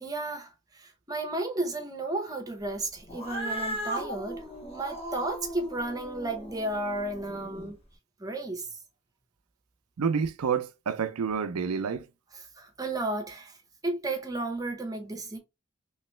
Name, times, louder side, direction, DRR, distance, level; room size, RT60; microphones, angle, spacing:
voice 1, 0.0-7.8 8.2-8.7 12.3-13.6 13.8-15.4, right 2 dB, 15° right, 0.7 m, -33 dB
Cat, 3.1-7.7, equal, 25° left, 1.3 m, -37 dB
voice 2, 10.0-12.0, right 6 dB, 80° right, 0.5 m, -28 dB
3.1 x 2.9 x 3.1 m
head